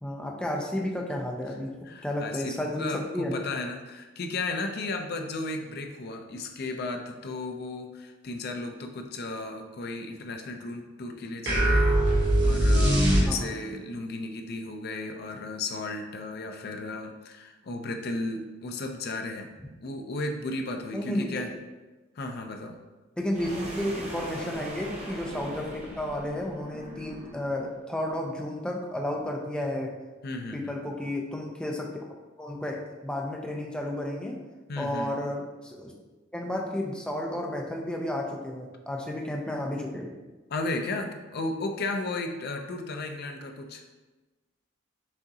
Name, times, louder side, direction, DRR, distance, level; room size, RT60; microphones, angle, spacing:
voice 1, 0.0-1.7 2.0-3.4 13.2-13.5 20.9-21.5 23.2-29.9 30.5-31.9 32.4-34.4 34.8-35.9 36.3-40.1, left 1 dB, 5° left, -1 dB, 0.5 m, -32 dB
voice 2, 1.8-19.5 19.8-21.5 22.2-22.8 30.2-30.7 34.7-35.2 40.5-43.8, left 2 dB, 50° left, 4 dB, 0.5 m, -34 dB
sound 1, 11.5-13.7, right 1 dB, 60° right, 1.1 m, -21 dB
sound 2, 23.3-27.6, right 1 dB, 35° right, 0.9 m, -41 dB
6.1 x 2.8 x 2.7 m, 1.2 s
head